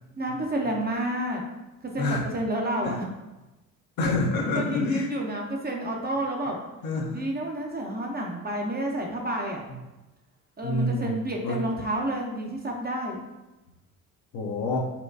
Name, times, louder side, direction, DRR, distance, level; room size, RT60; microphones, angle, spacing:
voice 1, 0.2-1.4 1.8-3.1 4.5-6.6 7.1-9.6 10.6-13.2, right 1 dB, 25° right, 0 dB, 0.7 m, -30 dB
voice 2, 4.0-5.1 6.8-7.2 10.6-11.6 14.3-14.8, left 2 dB, 60° left, 0 dB, 0.8 m, -27 dB
4.3 x 2.3 x 2.6 m, 1.0 s
hypercardioid pair, 55°, 41 cm